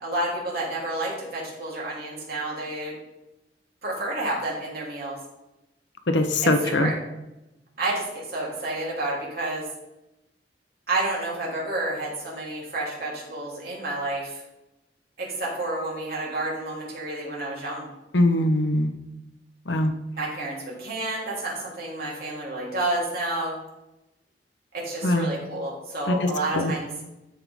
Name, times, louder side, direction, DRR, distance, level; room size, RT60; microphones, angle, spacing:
voice 1, 0.0-2.9 3.8-5.2 6.4-6.9 7.8-9.6 10.9-14.4 15.2-17.9 20.2-23.6 24.7-26.9, right 2 dB, 60° right, -5 dB, 3.5 m, -30 dB
voice 2, 6.1-6.9 18.1-18.9 19.7-19.9 25.0-25.3 26.1-26.3 26.5-26.7, left 1 dB, 85° left, 7 dB, 1.1 m, -21 dB
13.0 x 5.8 x 3.7 m, 0.95 s
head